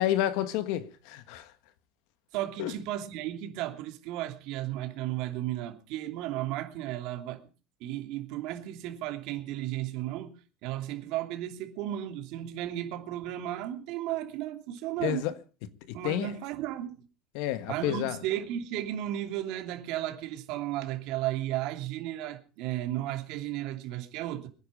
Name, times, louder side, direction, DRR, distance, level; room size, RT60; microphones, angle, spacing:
voice 1, 0.0-1.5 2.6-2.7 15.0-15.3 15.9-16.3 17.3-18.2, left 12 dB, 65° left, 1.5 m, -30 dB
voice 2, 2.3-7.5 7.8-15.3 15.9-17.1 17.7-24.5, right 13 dB, 60° right, 2.9 m, -34 dB
23.5 x 10.5 x 5.3 m
cardioid pair, 165°, 0 cm